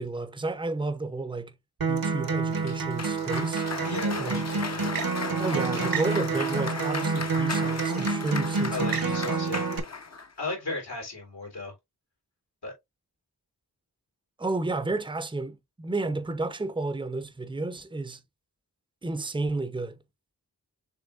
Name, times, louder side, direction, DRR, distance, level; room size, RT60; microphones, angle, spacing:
voice 1, 0.0-1.5 1.9-3.6 4.2-4.5 5.4-9.3 14.4-18.2 19.0-20.0, right 3 dB, 10° right, 0.7 m, -32 dB
Acoustic guitar, 1.8-9.8, right 4 dB, 60° right, 1.0 m, -28 dB
Cheering / Applause, 2.6-10.3, left 4 dB, 40° left, 0.8 m, -36 dB
voice 2, 3.9-5.0 8.7-9.7 10.4-11.7 12.6-12.7, left 2 dB, 80° left, 2.9 m, -36 dB
6.5 x 3.2 x 2.4 m
wide cardioid pair, 50°, 39 cm